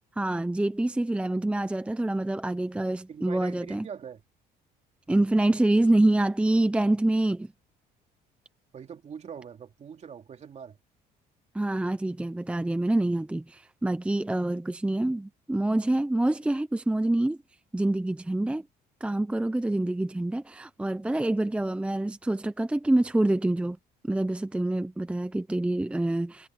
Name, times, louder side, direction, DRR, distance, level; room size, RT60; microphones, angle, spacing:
voice 1, 0.2-3.9 5.1-7.5 11.5-17.4 17.7-18.6 19.0-23.8 24.1-26.5, right 1 dB, 5° right, 0.6 m, -26 dB
voice 2, 3.1-4.2 8.7-10.8, right 7 dB, 40° right, 2.8 m, -42 dB
cardioid pair, 110°, 17 cm